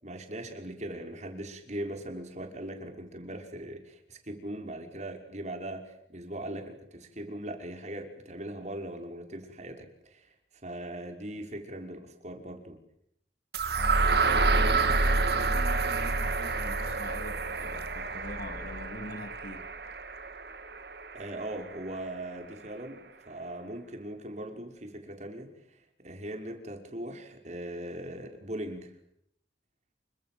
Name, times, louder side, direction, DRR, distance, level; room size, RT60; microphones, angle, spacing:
voice 1, 0.0-10.3 10.6-12.8 21.1-28.9, right 1 dB, 40° right, 5.8 m, -40 dB
sound 1, 13.5-21.5, right 3 dB, 60° right, 2.2 m, -28 dB
voice 2, 13.8-19.7, left 1 dB, 55° left, 3.0 m, -43 dB
29.0 x 26.0 x 7.9 m
head